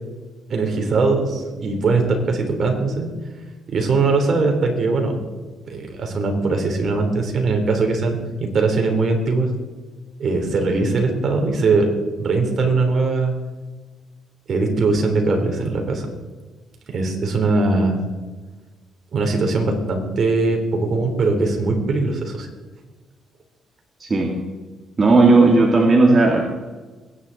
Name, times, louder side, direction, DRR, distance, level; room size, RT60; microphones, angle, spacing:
voice 1, 0.5-3.1 3.7-5.2 5.6-9.5 10.2-11.9 12.2-13.3 14.5-16.0 16.9-18.0 19.1-22.5, right 3 dB, 55° right, 3 dB, 3.7 m, -20 dB
voice 2, 24.0-24.4 25.0-26.4, right 3 dB, 30° right, 0 dB, 2.2 m, -14 dB
21.5 x 10.0 x 4.2 m, 1.3 s
cardioid pair, 90°, 0 cm